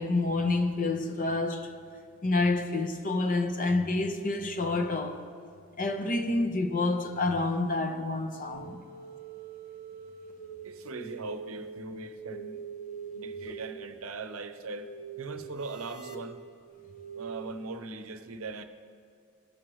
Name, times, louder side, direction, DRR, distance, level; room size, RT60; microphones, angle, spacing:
voice 1, 0.0-1.7 2.2-5.3 5.8-8.8, left 2 dB, 40° left, 0.7 m, -28 dB
sound 1, 8.3-17.5, right 6 dB, 75° left, 1.1 m, -44 dB
voice 2, 10.6-12.7 13.1-14.9 15.2-16.4 17.1-18.6, right 3 dB, 85° right, 0.6 m, -40 dB
17.0 x 6.2 x 3.1 m
head